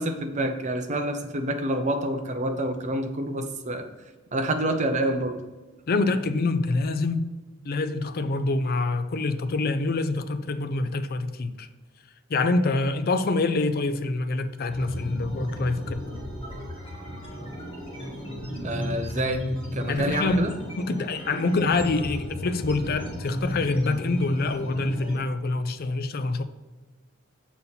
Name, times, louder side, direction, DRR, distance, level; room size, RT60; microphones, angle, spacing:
voice 1, 0.0-3.8 4.3-5.4 18.6-19.5 19.7-20.5, right 1 dB, 35° right, 0.7 m, -27 dB
voice 2, 5.9-7.2 7.6-11.7 12.3-16.0 19.9-26.4, left 3 dB, 45° left, 0.5 m, -26 dB
sound 1, 14.7-25.2, left 1 dB, 25° left, 1.3 m, -34 dB
6.9 x 4.2 x 4.0 m
head